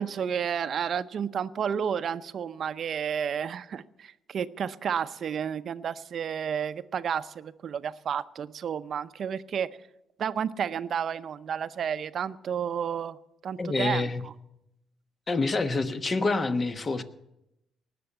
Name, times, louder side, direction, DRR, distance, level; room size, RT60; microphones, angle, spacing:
voice 1, 0.0-9.7 10.2-13.2 13.4-14.3, right 8 dB, 60° right, 13 dB, 0.6 m, -31 dB
voice 2, 13.6-14.2 15.3-17.0, left 3 dB, 35° left, 9 dB, 1.1 m, -27 dB
19.5 x 6.9 x 8.4 m, 0.87 s
cardioid pair, 90°, 0 cm